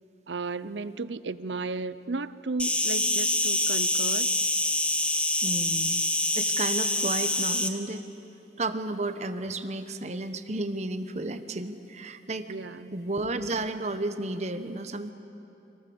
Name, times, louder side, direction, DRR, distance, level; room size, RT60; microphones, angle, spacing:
voice 1, 0.3-4.3 12.5-13.0, right 3 dB, 85° right, 15 dB, 0.8 m, -34 dB
Insect, 2.6-7.7, left 2 dB, 5° left, 1.0 m, -26 dB
voice 2, 5.4-6.0 6.4-8.0 8.6-12.5 12.9-15.1, right 2 dB, 40° right, 9 dB, 1.0 m, -32 dB
29.0 x 23.5 x 7.0 m, 2.9 s
head